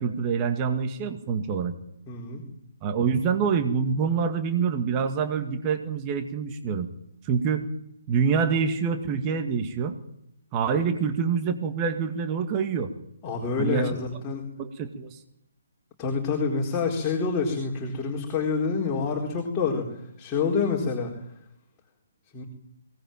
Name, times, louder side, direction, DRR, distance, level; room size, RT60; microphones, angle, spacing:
voice 1, 0.0-1.7 2.8-6.9 7.2-7.7 8.1-10.0 10.5-12.9 13.6-14.0 14.6-15.2, right 6 dB, 25° right, 7 dB, 2.1 m, -26 dB
voice 2, 2.1-2.4 13.2-14.5 16.0-19.8 20.2-21.1 22.3-22.4, left 5 dB, 20° left, -2 dB, 4.3 m, -27 dB
23.0 x 18.5 x 9.1 m, 0.79 s
figure-of-eight pair, 135°, 0 cm